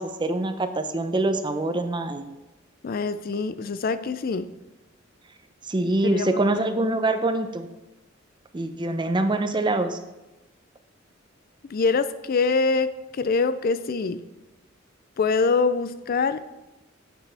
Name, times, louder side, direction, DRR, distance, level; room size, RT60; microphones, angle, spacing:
voice 1, 0.0-2.2 5.7-7.7 8.5-10.0, right 2 dB, 25° right, 9 dB, 0.6 m, -24 dB
voice 2, 2.8-4.5 5.8-6.4 11.7-12.9 13.2-14.2 15.2-16.4, left 4 dB, 50° left, 13 dB, 0.4 m, -24 dB
9.4 x 8.0 x 3.4 m, 1.0 s
head